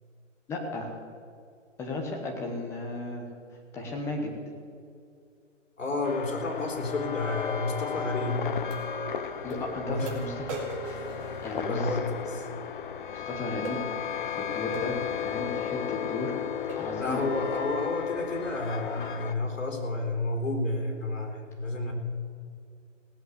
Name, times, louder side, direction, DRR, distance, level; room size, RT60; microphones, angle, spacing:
voice 1, 0.5-1.0 1.8-3.3 3.7-4.3 9.4-10.6 10.8-11.1 11.4-11.9 13.1-13.8 14.2-15.0 15.2-16.4 16.8-17.2, left 2 dB, 5° left, 1 dB, 1.1 m, -35 dB
voice 2, 5.8-8.8 9.8-10.2 10.9-11.1 11.6-12.5 17.0-21.9, left 2 dB, 75° left, 2 dB, 3.9 m, -31 dB
sound 1, 6.0-19.3, left 8 dB, 40° left, 0.7 m, -34 dB
sound 2, 7.7-7.8 8.7-8.8 9.5-9.6 10.1-12.0 13.7-13.9 14.7-14.9 15.7-15.9 16.3-16.4 16.7-17.0 17.6-17.8, right 3 dB, 25° right, 2.3 m, -40 dB
17.5 x 7.8 x 8.1 m, 2.3 s
hypercardioid pair, 160°, 38 cm